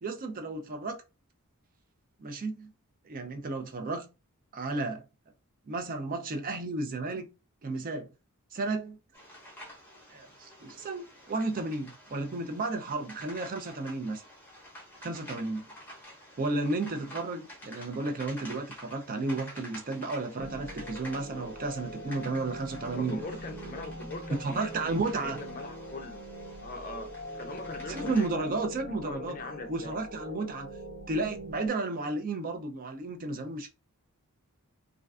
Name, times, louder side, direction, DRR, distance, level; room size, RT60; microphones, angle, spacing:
voice 1, 0.0-1.0 2.2-2.7 3.0-4.1 4.5-5.0 5.7-7.3 7.6-8.1 8.5-9.0 10.1-14.2 15.0-15.6 16.4-23.2 24.3-25.4 27.9-29.4 29.7-30.8 31.1-33.7, right 3 dB, 40° right, 0.4 m, -33 dB
sound 1, 9.1-28.3, equal, 10° left, 0.7 m, -49 dB
sound 2, 20.4-31.7, equal, 55° right, 0.9 m, -42 dB
voice 2, 22.9-26.3 26.6-30.0, left 3 dB, 40° left, 0.4 m, -42 dB
2.4 x 2.2 x 2.3 m
head